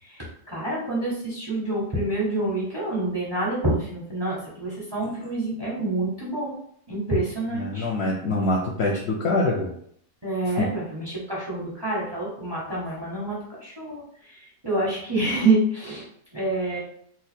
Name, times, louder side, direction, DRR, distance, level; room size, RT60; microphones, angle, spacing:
voice 1, 0.0-6.6 6.9-7.9 10.2-16.1 16.3-16.8, right 2 dB, 20° right, -5 dB, 0.8 m, -27 dB
voice 2, 7.5-9.7 10.6-10.7, left 2 dB, 60° left, -2 dB, 0.7 m, -24 dB
2.8 x 2.3 x 4.2 m, 0.67 s
omnidirectional pair, 1.5 m